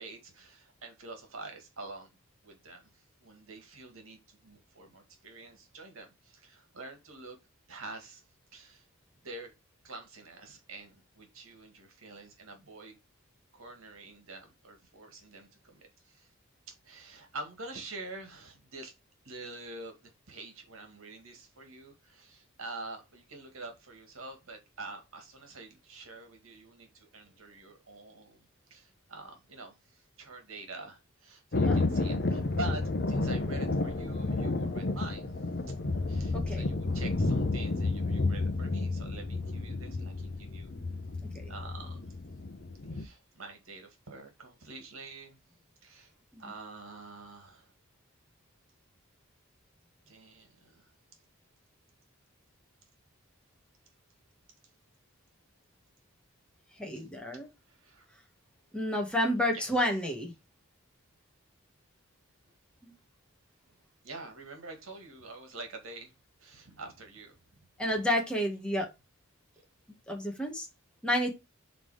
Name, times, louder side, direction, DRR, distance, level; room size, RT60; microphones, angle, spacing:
voice 1, 0.0-2.1 2.4-2.8 3.2-7.4 7.7-8.2 8.5-8.8 9.2-9.5 9.8-12.9 13.5-16.3 16.7-18.9 19.2-32.8 33.1-35.3 35.7-35.8 36.1-40.7 41.5-42.0 42.9-45.4 45.8-46.1 46.4-47.7 50.1-50.9 57.0-57.1 57.7-58.1 59.5-59.7 64.0-67.3, right 3 dB, 80° right, 2.0 m, -46 dB
Thunder, 31.5-43.0, left 2 dB, 55° left, 0.8 m, -31 dB
voice 2, 36.3-36.7 41.3-41.5 46.3-46.5 56.8-57.5 58.7-60.3 62.8-62.9 67.8-68.9 70.1-70.7 71.0-71.3, left 1 dB, 5° left, 1.7 m, -30 dB
5.3 x 4.1 x 4.9 m
head